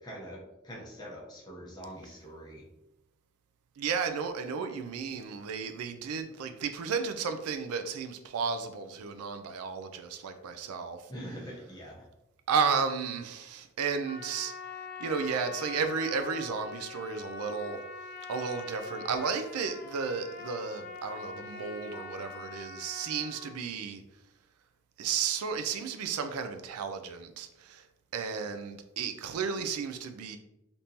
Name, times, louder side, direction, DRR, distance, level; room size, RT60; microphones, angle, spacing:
voice 1, 0.0-2.6 11.1-12.0, equal, 20° left, 0.7 m, -44 dB
voice 2, 3.8-11.0 12.5-14.5 15.0-17.8 18.3-24.0 25.0-27.8 28.1-30.4, right 6 dB, 90° right, 0.4 m, -33 dB
Trumpet, 14.1-23.5, left 4 dB, 45° left, 0.3 m, -43 dB
3.5 x 2.6 x 2.8 m
head